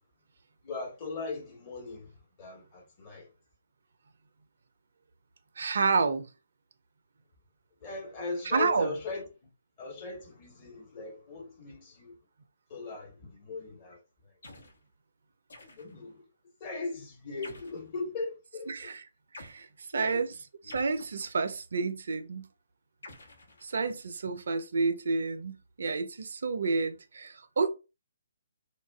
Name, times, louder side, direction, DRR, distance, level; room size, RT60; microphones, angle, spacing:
voice 1, 0.6-2.1 2.4-3.3 7.8-9.5 9.8-12.2 12.7-14.0 15.8-16.2 16.6-18.9 19.9-20.2, left 3 dB, 30° left, 1.2 m, -39 dB
voice 2, 5.6-6.3 8.4-8.9 18.7-19.0 19.3-19.7 19.9-20.3 20.7-22.5 23.6-27.7, right 4 dB, 60° right, 0.4 m, -29 dB
sound 1, 14.4-14.8 15.5-16.1 17.4-17.9 19.3-19.6 20.7-21.6 23.0-24.1, left 2 dB, 70° left, 0.9 m, -50 dB
2.5 x 2.4 x 2.2 m
figure-of-eight pair, 135°, 0 cm